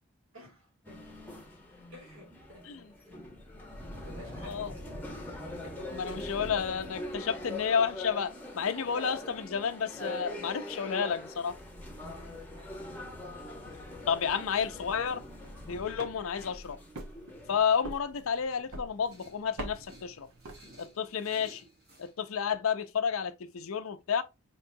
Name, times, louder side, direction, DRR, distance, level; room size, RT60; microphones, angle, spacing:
voice 1, 0.3-1.2 1.9-3.3 3.9-5.3 5.6-6.0 12.1-12.8, equal, 70° right, 2.3 m, -52 dB
sound 1, 0.8-17.6, left 1 dB, 10° left, 0.8 m, -42 dB
voice 2, 5.9-11.6 14.1-15.2 15.7-16.8 17.5-20.3 20.8-21.6 22.0-24.2, left 7 dB, 75° left, 0.5 m, -31 dB
sound 2, 14.9-21.1, right 1 dB, 90° right, 0.9 m, -46 dB
sound 3, 19.0-22.1, right 1 dB, 45° right, 1.5 m, -56 dB
4.6 x 2.9 x 2.6 m
head